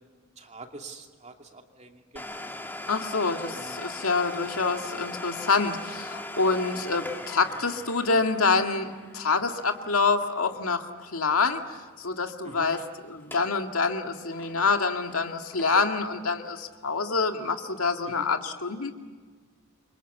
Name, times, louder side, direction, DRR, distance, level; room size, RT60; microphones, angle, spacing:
voice 1, 0.4-2.5 3.5-3.8 12.4-12.7 18.2-18.3, right 2 dB, 30° right, 3 dB, 2.6 m, -45 dB
Domestic sounds home sounds, 2.2-11.6 11.8-11.9 12.5-12.9 13.2-13.6 13.9-16.0 16.5-16.6 17.2-17.3, left 1 dB, 10° left, 1.6 m, -41 dB
voice 2, 2.9-11.6 12.0-18.9, left 4 dB, 80° left, 5 dB, 2.0 m, -26 dB
28.5 x 24.5 x 8.3 m, 1.5 s
head